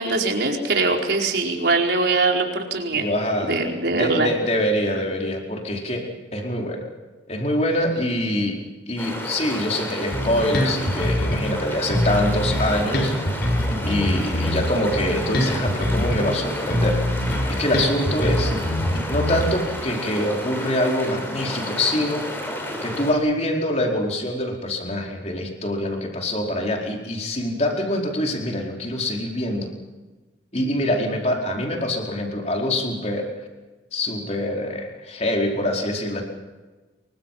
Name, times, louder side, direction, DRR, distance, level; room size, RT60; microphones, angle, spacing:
voice 1, 0.0-3.1 3.4-4.3 13.9-14.1, right 3 dB, 65° right, 1 dB, 4.6 m, -22 dB
voice 2, 2.9-3.6 3.9-6.9 7.3-8.6 8.9-13.1 13.8-17.0 17.5-18.5 19.1-22.3 22.8-29.7 30.5-33.3 33.9-36.2, left 1 dB, 35° left, 0 dB, 4.6 m, -24 dB
sound 1, 9.0-23.1, equal, 10° left, 6.0 m, -31 dB
Bass guitar, 10.1-11.6 11.9-16.4 16.7-19.7, left 1 dB, 60° left, 5.6 m, -24 dB
28.5 x 24.0 x 5.8 m, 1.2 s
head